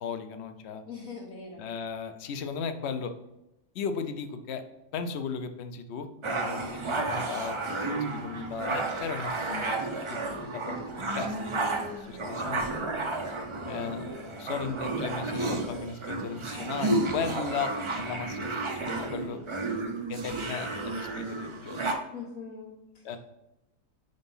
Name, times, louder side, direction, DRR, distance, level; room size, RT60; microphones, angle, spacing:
voice 1, 0.0-0.8 1.6-3.1 3.7-4.6 4.9-7.6 7.9-12.7 13.7-19.4 20.1-21.9 23.0-23.2, left 6 dB, 65° left, 8 dB, 0.8 m, -36 dB
voice 2, 0.8-1.7 22.1-23.1, left 5 dB, 85° left, -2 dB, 1.3 m, -42 dB
sound 1, 6.2-21.9, right 2 dB, 45° right, 0.3 m, -32 dB
4.5 x 4.0 x 5.3 m, 0.94 s
omnidirectional pair, 1.4 m